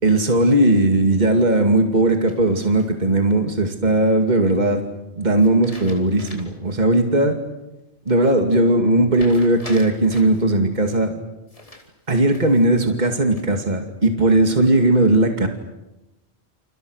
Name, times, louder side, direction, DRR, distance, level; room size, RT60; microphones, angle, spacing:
voice 1, 0.0-4.8 5.2-7.3 8.1-11.1 12.1-15.5, right 1 dB, 40° right, 4 dB, 2.5 m, -18 dB
sound 1, 2.3-3.2 5.4-6.7 7.1-7.2 9.1-10.4 11.5-12.7 13.1-13.7, left 1 dB, 30° left, 4.4 m, -42 dB
29.0 x 29.0 x 6.5 m, 0.97 s
omnidirectional pair, 1.2 m